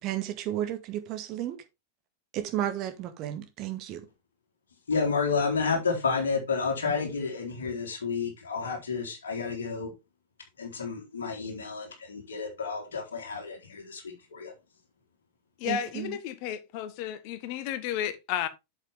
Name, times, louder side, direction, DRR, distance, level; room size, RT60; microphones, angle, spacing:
voice 1, 0.0-1.6 2.3-4.0 15.6-16.2, right 12 dB, 40° right, 1.9 m, -33 dB
voice 2, 4.9-9.9 10.6-14.5, left 5 dB, 65° left, 3.7 m, -30 dB
voice 3, 15.6-18.5, left 10 dB, 45° left, 1.3 m, -32 dB
8.2 x 7.4 x 3.5 m
figure-of-eight pair, 90°, 0 cm